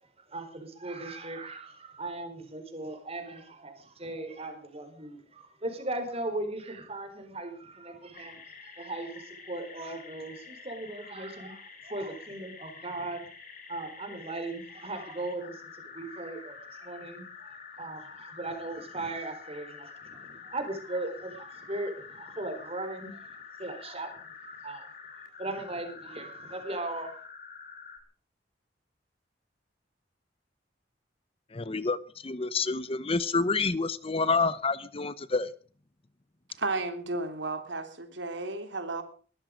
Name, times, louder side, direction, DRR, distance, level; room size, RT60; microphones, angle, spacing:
voice 1, 0.3-13.3 13.7-23.2 23.6-24.9 25.4-27.2, right 2 dB, 35° right, 6 dB, 4.4 m, -38 dB
sound 1, 8.1-28.0, left 5 dB, 50° left, 4.0 m, -48 dB
voice 2, 31.5-32.0 32.2-35.5, left 4 dB, 30° left, 17 dB, 0.8 m, -28 dB
voice 3, 36.6-39.0, right 3 dB, 85° right, 7 dB, 3.1 m, -33 dB
20.5 x 13.5 x 5.2 m, 0.42 s
head